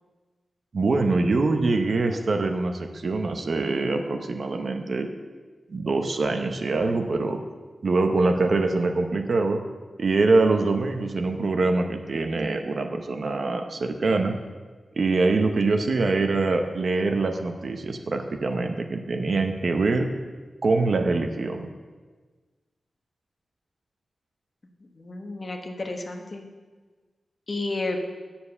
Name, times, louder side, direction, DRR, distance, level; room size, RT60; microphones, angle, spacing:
voice 1, 0.7-5.1 5.7-7.4 7.8-9.6 10.0-14.3 15.0-20.1 20.6-21.7, right 3 dB, 55° right, 5 dB, 0.9 m, -24 dB
voice 2, 25.0-26.5 27.5-28.0, left 2 dB, 40° left, 3 dB, 1.1 m, -31 dB
9.3 x 7.1 x 6.9 m, 1.4 s
wide cardioid pair, 135°, 0 cm